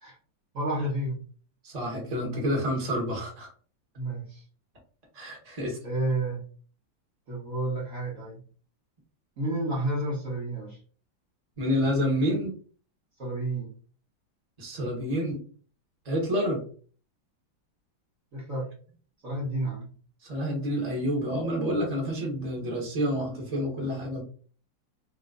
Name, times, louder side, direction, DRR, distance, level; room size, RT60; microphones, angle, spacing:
voice 1, 0.5-1.2 3.9-4.4 5.8-6.4 7.3-8.4 9.4-10.8 13.2-13.7 18.3-18.7 19.2-19.9, right 2 dB, 50° right, -6 dB, 1.4 m, -30 dB
voice 2, 1.6-3.5 5.1-5.8 11.6-12.5 14.6-15.4 16.0-16.6 20.2-24.2, equal, 20° right, -1 dB, 1.4 m, -28 dB
3.2 x 3.1 x 3.8 m, 0.43 s
omnidirectional pair, 2.1 m